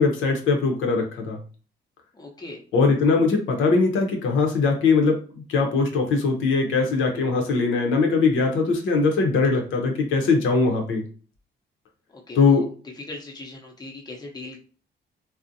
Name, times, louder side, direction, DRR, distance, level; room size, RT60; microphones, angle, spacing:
voice 1, 0.0-1.4 2.7-11.0 12.4-12.6, left 4 dB, 75° left, 3 dB, 0.7 m, -21 dB
voice 2, 2.1-2.6 12.1-12.7 13.0-14.6, left 2 dB, 20° left, 0 dB, 0.6 m, -39 dB
2.5 x 2.1 x 2.6 m, 0.39 s
cardioid pair, 90°, 20 cm